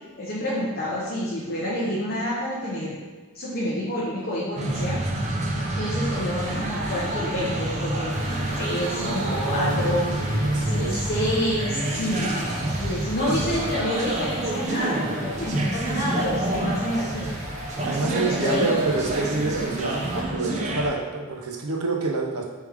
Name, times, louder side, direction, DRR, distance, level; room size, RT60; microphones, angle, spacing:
voice 1, 0.2-3.0 3.3-5.0 5.8-12.5 12.8-17.3 17.8-18.7, left 1 dB, 40° left, -7 dB, 0.7 m, -28 dB
sound 1, 4.6-20.9, right 1 dB, 30° right, 0.5 m, -28 dB
sound 2, 6.2-12.4, left 3 dB, 75° left, 0.4 m, -41 dB
sound 3, 8.1-20.2, equal, 55° right, 1.3 m, -42 dB
voice 2, 8.9-11.0 17.8-22.5, right 3 dB, 80° right, 2 dB, 0.7 m, -28 dB
3.4 x 3.3 x 4.8 m, 1.3 s
head